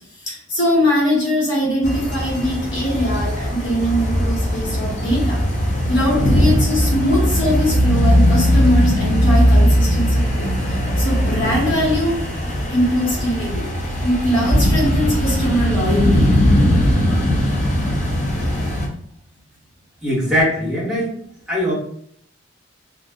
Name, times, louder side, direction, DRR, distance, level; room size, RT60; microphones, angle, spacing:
voice 1, 0.2-5.4 5.9-12.2 12.7-13.7 14.0-16.3, equal, 65° left, -5 dB, 1.4 m, -21 dB
sound 1, 1.8-18.9, equal, 35° left, 0.6 m, -18 dB
voice 2, 20.0-21.1 21.5-21.7, equal, ahead, -8 dB, 1.1 m, -20 dB
2.4 x 2.3 x 3.6 m, 0.64 s
head